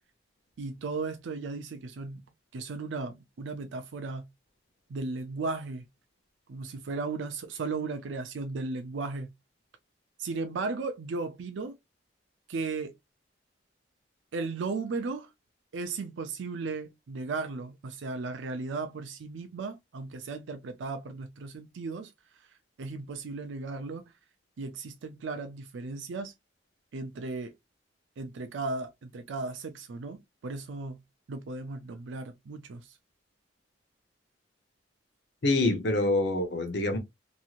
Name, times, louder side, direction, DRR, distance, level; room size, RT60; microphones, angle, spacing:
voice 1, 0.6-2.2 2.5-4.2 4.9-5.9 6.5-9.3 10.2-11.8 12.5-12.9 14.3-15.3 15.7-22.1 22.8-24.1 24.6-26.3 26.9-27.5 28.2-31.0 31.3-33.0, right 3 dB, 80° right, 0.4 m, -36 dB
voice 2, 35.4-37.0, left 2 dB, 65° left, 0.7 m, -26 dB
3.0 x 2.6 x 2.3 m
head